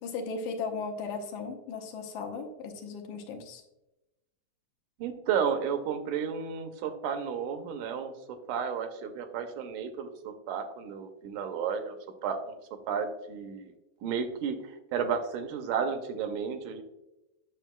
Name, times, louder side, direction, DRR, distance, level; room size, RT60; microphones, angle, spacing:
voice 1, 0.0-3.6, left 4 dB, 75° left, 4 dB, 2.2 m, -36 dB
voice 2, 5.0-12.0 12.2-12.6 12.9-13.7 14.0-16.8, right 7 dB, 80° right, 7 dB, 2.1 m, -32 dB
9.1 x 6.3 x 2.2 m, 0.96 s
omnidirectional pair, 3.6 m